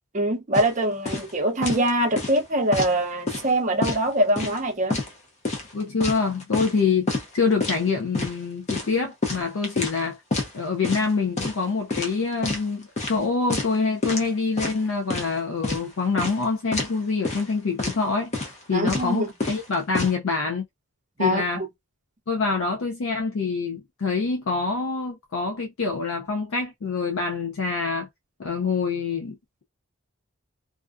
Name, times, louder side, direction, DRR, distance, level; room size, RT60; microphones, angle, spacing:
voice 1, 0.1-5.0 18.7-19.3 21.2-21.7, right 1 dB, 35° right, 0.6 m, -23 dB
sound 1, 0.5-0.7 1.1-1.3 1.6-1.9 2.2-2.9 3.3-3.5 3.8-4.6 4.9-5.1 5.4-6.8 7.1-7.3 7.6-7.8 8.1-8.4 8.7-10.0 10.3-10.5 10.8-11.1 11.4-11.6 11.9-12.6 13.0-13.2 13.5-13.8 14.0-14.3 14.6-15.3 15.6-15.8 16.2-16.4 16.7-16.9 17.2-17.5 17.8-18.0 18.3-18.6 18.9-19.1 19.4-20.1, left 2 dB, 30° left, 0.6 m, -28 dB
voice 2, 5.7-10.2 10.5-18.3 18.7-20.7 21.2-21.6 22.3-28.1 28.4-29.4, left 4 dB, 75° left, 0.5 m, -26 dB
2.4 x 2.2 x 2.4 m
head